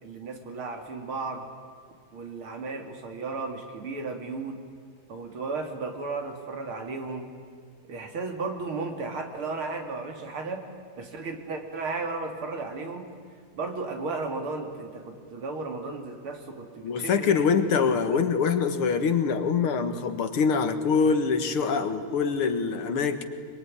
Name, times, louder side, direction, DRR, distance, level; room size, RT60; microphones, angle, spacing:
voice 1, 0.0-1.5 2.1-4.6 5.1-7.3 7.9-10.7 11.0-13.1 13.5-17.5 17.8-18.3, right 3 dB, 75° right, 4 dB, 3.5 m, -34 dB
voice 2, 16.8-23.3, left 5 dB, 85° left, 8 dB, 2.5 m, -24 dB
23.5 x 23.5 x 9.9 m, 2.1 s
omnidirectional pair, 2.4 m